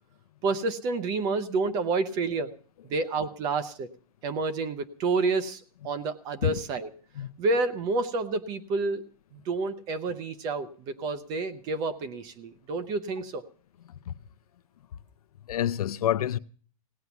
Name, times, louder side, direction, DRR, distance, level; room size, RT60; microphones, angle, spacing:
voice 1, 0.4-2.5 2.9-3.9 4.2-6.9 7.4-9.0 9.3-13.4, right 3 dB, 20° right, 0.7 m, -29 dB
voice 2, 15.5-16.4, left 11 dB, 75° left, 0.7 m, -28 dB
17.0 x 9.5 x 7.0 m
supercardioid pair, 170°, 19 cm